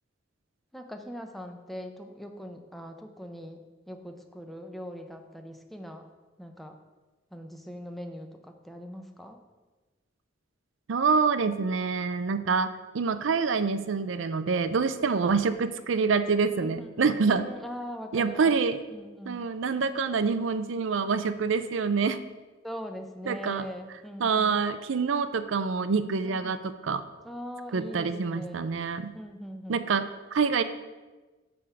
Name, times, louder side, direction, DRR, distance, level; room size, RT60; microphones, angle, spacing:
voice 1, 0.7-6.0 6.4-6.8 7.3-9.4 15.0-15.1 16.6-18.6 18.9-19.5 21.9-22.0 22.6-24.5 26.2-26.6 27.2-28.7 29.1-29.8, equal, ahead, 5 dB, 0.6 m, -41 dB
voice 2, 10.9-17.4 18.1-18.8 19.3-22.2 23.3-23.7 24.2-27.0 27.7-29.1 29.7-30.6, right 5 dB, 80° right, 11 dB, 0.5 m, -26 dB
9.9 x 3.6 x 7.0 m, 1.2 s
head